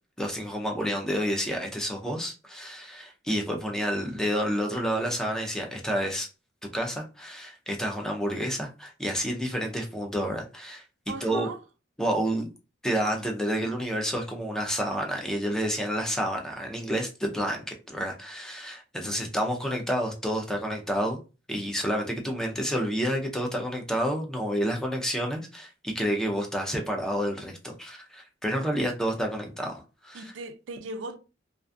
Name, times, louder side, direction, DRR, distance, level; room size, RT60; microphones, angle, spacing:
voice 1, 0.2-6.3 6.7-10.8 11.2-11.5 12.0-12.5 12.8-21.2 21.5-30.3, equal, 5° left, 0.4 m, -29 dB
voice 2, 11.1-11.6 19.0-19.4 30.1-31.2, right 3 dB, 70° right, 0.4 m, -38 dB
2.4 x 2.3 x 2.5 m
head